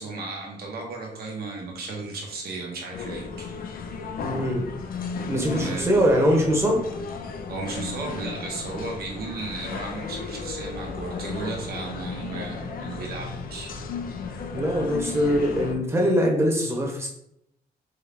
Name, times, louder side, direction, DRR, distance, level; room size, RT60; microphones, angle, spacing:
voice 1, 0.0-3.5 5.5-6.0 7.5-13.7, right 3 dB, 70° right, -1 dB, 1.3 m, -34 dB
sound 1, 2.9-15.8, left 5 dB, 60° left, 0.6 m, -34 dB
voice 2, 4.2-4.6 5.2-6.8 14.5-17.1, equal, 15° right, -1 dB, 1.1 m, -22 dB
3.9 x 3.8 x 3.5 m, 0.78 s
cardioid pair, 110°, 16 cm